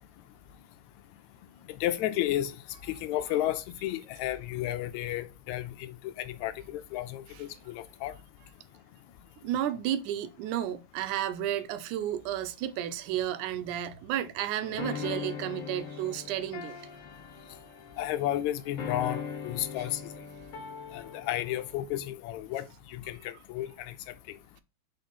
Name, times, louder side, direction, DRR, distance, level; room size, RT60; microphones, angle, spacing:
voice 1, 1.7-8.2 18.0-20.0 20.9-24.0, left 13 dB, 80° left, 1.8 m, -33 dB
voice 2, 9.4-16.9, right 11 dB, 85° right, 2.1 m, -32 dB
sound 1, 14.6-21.8, left 6 dB, 65° left, 2.0 m, -40 dB
4.8 x 4.0 x 5.3 m
omnidirectional pair, 3.5 m